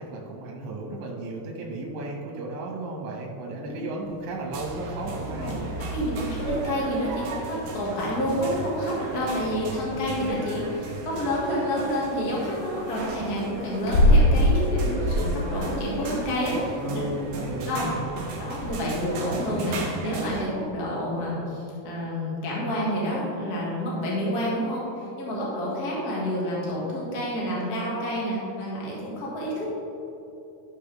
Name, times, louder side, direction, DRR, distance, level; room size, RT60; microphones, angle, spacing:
voice 1, 0.0-5.9 16.7-18.3, right 2 dB, 60° right, -2 dB, 2.3 m, -34 dB
sound 1, 4.0-20.7, left 1 dB, 85° left, 3.5 m, -29 dB
sound 2, 4.5-20.4, right 3 dB, 75° right, 1.5 m, -35 dB
voice 2, 5.9-17.0 17.6-17.8 18.4-29.7, equal, 35° left, -6 dB, 1.6 m, -29 dB
13.0 x 6.5 x 3.5 m, 3.0 s
omnidirectional pair, 4.8 m